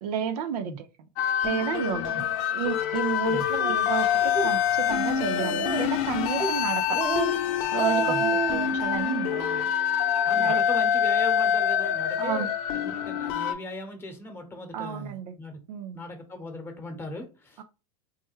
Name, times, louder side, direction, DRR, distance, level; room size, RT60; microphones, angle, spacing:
voice 1, 0.0-0.9 1.4-2.1 2.5-7.0 7.7-9.6 10.4-10.6 12.2-12.5 14.7-15.3 15.7-16.0 17.6-17.7, right 8 dB, 75° right, 0.5 m, -31 dB
sound 1, 1.2-13.5, left 9 dB, 60° left, 0.6 m, -26 dB
Speech, 3.6-3.8 4.2-4.5 4.9-5.0 5.4-6.0 6.4-6.6 6.9-7.3 7.6-8.7, right 5 dB, 20° right, 0.5 m, -29 dB
voice 2, 10.2-15.6 15.9-17.6, left 2 dB, 10° left, 1.0 m, -38 dB
3.3 x 2.2 x 3.0 m
hypercardioid pair, 110°, 20 cm